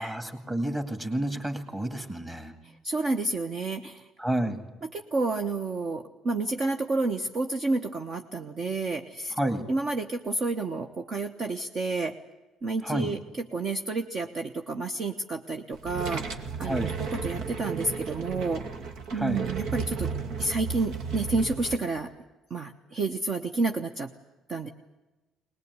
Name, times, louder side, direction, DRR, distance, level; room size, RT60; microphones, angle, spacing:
voice 1, 0.0-2.5 4.2-4.6 9.3-9.7 12.8-13.1 16.6-17.0 19.1-19.5, right 1 dB, 10° right, 7 dB, 2.3 m, -30 dB
voice 2, 2.8-4.1 4.9-9.3 9.7-12.2 12.6-18.6 19.1-20.1 20.4-22.1 22.5-24.1 24.5-24.7, right 3 dB, 35° right, 6 dB, 1.1 m, -30 dB
sound 1, 15.7-21.8, right 5 dB, 70° right, 2.2 m, -34 dB
23.0 x 20.0 x 9.7 m, 1.1 s
cardioid pair, 170°, 0 cm